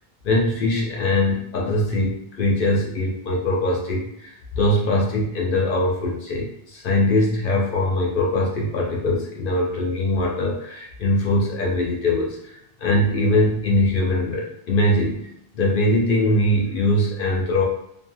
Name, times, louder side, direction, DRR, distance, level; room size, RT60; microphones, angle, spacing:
voice 1, 0.2-15.3 15.5-17.6, left 1 dB, 60° left, -3 dB, 0.7 m, -22 dB
2.8 x 2.6 x 2.2 m, 0.75 s
omnidirectional pair, 1.0 m